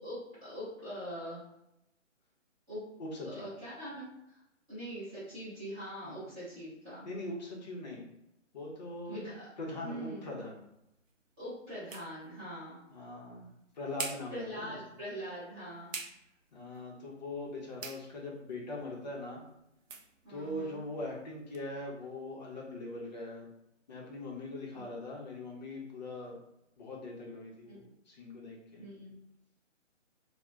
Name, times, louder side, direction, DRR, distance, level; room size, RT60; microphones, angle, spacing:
voice 1, 0.0-1.4 2.7-2.9 3.2-4.4 4.7-7.1 9.1-9.5 9.8-10.3 11.4-12.8 14.3-15.9 20.2-20.8 24.7-24.8 27.7-27.8 28.8-29.1, equal, 10° right, -14 dB, 0.7 m, -42 dB
voice 2, 3.0-3.4 6.0-6.2 7.1-8.0 8.5-9.2 9.6-10.6 12.9-14.8 16.5-19.4 20.3-23.5 23.9-26.4 26.8-28.8, left 2 dB, 35° left, -2 dB, 0.6 m, -41 dB
sound 1, 10.2-21.7, right 5 dB, 85° right, 0.5 m, -49 dB
2.4 x 2.1 x 3.1 m, 0.85 s
figure-of-eight pair, 150°, 38 cm